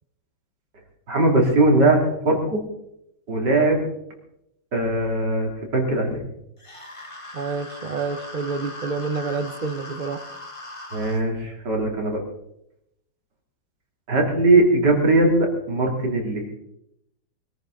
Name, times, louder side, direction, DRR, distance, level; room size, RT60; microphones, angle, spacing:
voice 1, 1.1-2.6 3.3-3.9 4.7-6.2 10.9-12.2 14.1-16.5, right 2 dB, 65° right, 0 dB, 3.4 m, -20 dB
sound 1, 6.6-11.2, left 1 dB, 20° left, 1.4 m, -39 dB
voice 2, 7.3-10.2, right 4 dB, 40° right, 10 dB, 0.6 m, -28 dB
22.5 x 13.5 x 3.9 m, 0.80 s
omnidirectional pair, 2.0 m